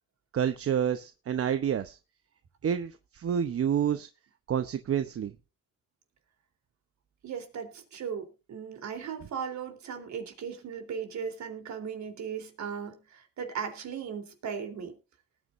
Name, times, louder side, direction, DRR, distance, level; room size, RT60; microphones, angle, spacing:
voice 1, 0.3-2.0 2.6-4.1 4.5-5.3, right 8 dB, 50° right, 10 dB, 0.9 m, -28 dB
voice 2, 7.2-15.0, right 7 dB, 65° right, 6 dB, 3.6 m, -37 dB
19.5 x 9.6 x 2.6 m, 0.29 s
cardioid pair, 90°, 30 cm